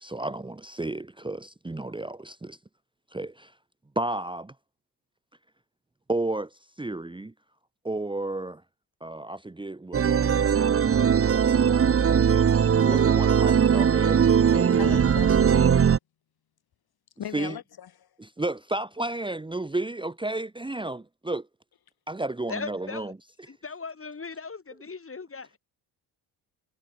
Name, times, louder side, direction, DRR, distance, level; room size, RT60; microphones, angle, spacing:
voice 1, 0.0-2.6 3.1-3.5 3.9-4.5 6.1-6.5 6.8-7.3 7.8-8.6 9.0-10.6 11.2-15.1 17.3-17.6 18.2-21.5 22.1-23.1, right 2 dB, 10° right, 1.2 m, -33 dB
sound 1, 9.9-16.0, right 7 dB, 30° right, 0.9 m, -20 dB
voice 2, 14.4-15.6 17.2-18.1, left 10 dB, 60° left, 2.1 m, -39 dB
voice 3, 22.5-23.1 23.5-25.6, left 4 dB, 30° left, 4.4 m, -38 dB
cardioid pair, 80°, 42 cm